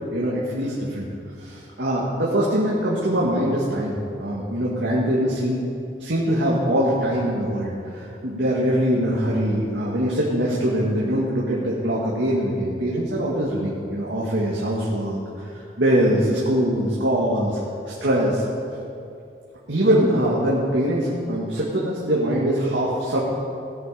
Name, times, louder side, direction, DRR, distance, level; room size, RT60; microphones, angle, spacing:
voice 1, 0.1-1.1 1.4-5.6 6.0-17.6 17.9-18.4 19.7-23.2, equal, 90° right, -5 dB, 2.2 m, -23 dB
18.0 x 9.3 x 5.3 m, 2.5 s
head